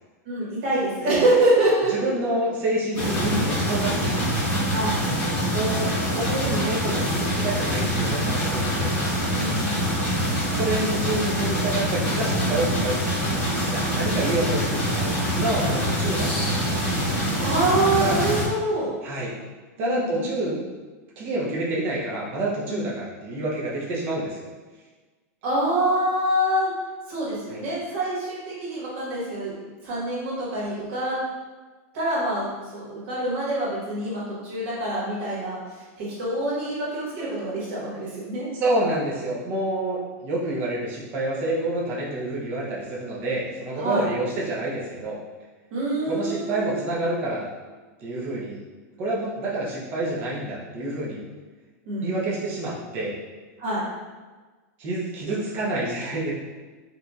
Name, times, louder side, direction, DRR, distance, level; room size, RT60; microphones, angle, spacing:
voice 1, 0.2-2.1 4.7-5.0 9.4-9.9 17.4-18.9 19.8-20.6 22.7-22.8 25.4-26.7 27.1-29.5 29.8-31.2 31.9-35.6 36.0-38.5 43.8-44.1 45.7-46.8 51.8-52.1 53.6-53.8, right 1 dB, 45° right, -7 dB, 1.4 m, -25 dB
voice 2, 1.9-4.3 5.5-9.0 10.2-16.8 18.0-18.2 19.0-19.3 19.8-20.6 21.2-24.5 27.5-27.6 38.5-45.2 46.1-47.5 48.0-48.6 49.0-51.2 52.0-53.2 54.8-56.3, right 1 dB, 25° right, -6 dB, 0.7 m, -28 dB
sound 1, 2.9-18.4, equal, 15° left, 1.3 m, -25 dB
4.1 x 2.6 x 2.3 m, 1.3 s
supercardioid pair, 175°, 9 cm